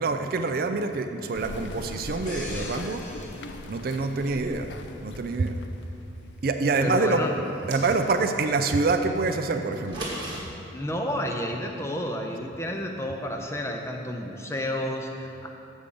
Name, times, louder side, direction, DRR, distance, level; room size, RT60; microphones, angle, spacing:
voice 1, 0.0-3.1 3.7-4.8 5.0-5.6 6.4-7.2 7.7-10.1, right 3 dB, 50° right, 7 dB, 0.4 m, -26 dB
sound 1, 1.3-6.5, left 2 dB, 65° left, 0.4 m, -40 dB
sound 2, 2.3-4.9 5.4-5.6, left 2 dB, 40° left, 0.9 m, -43 dB
voice 2, 6.8-7.3 10.7-15.5, equal, 15° left, 2 dB, 0.5 m, -30 dB
sound 3, 7.4-8.3 9.7-10.4, right 1 dB, 25° right, 1.3 m, -36 dB
7.1 x 5.1 x 6.8 m, 2.8 s
head